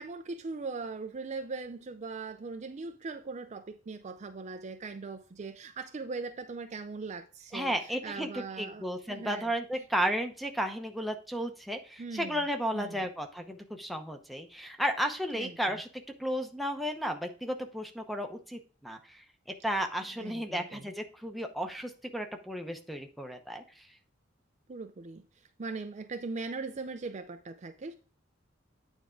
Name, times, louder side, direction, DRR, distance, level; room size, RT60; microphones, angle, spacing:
voice 1, 0.0-9.5 12.0-12.4 12.7-13.1 15.3-15.8 20.0-20.9 24.7-27.9, right 4 dB, 35° right, 0.4 m, -40 dB
voice 2, 7.5-15.9 16.2-19.2 19.6-23.9, equal, ahead, 0.8 m, -34 dB
9.2 x 3.6 x 5.0 m
head